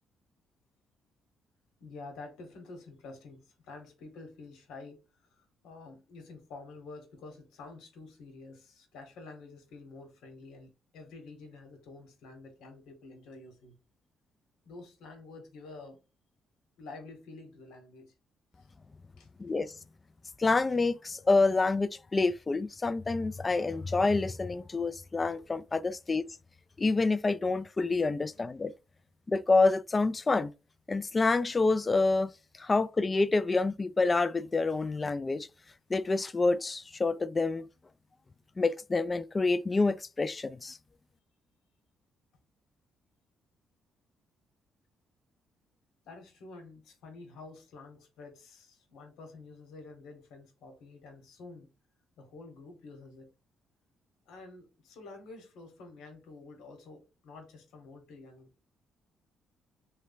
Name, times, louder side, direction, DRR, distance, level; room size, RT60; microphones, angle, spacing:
voice 1, 1.8-13.8 14.6-16.0 16.8-18.1 18.5-18.7 19.2-19.3 46.1-51.7 52.2-53.3 54.3-58.5, left 3 dB, 85° left, 1.1 m, -49 dB
voice 2, 19.4-19.7 20.4-26.4 26.8-28.7 29.3-30.5 30.9-32.3 32.6-35.5 35.9-37.6 38.6-40.8, left 3 dB, 25° left, 0.3 m, -27 dB
3.2 x 2.2 x 3.8 m
cardioid pair, 90°, 0 cm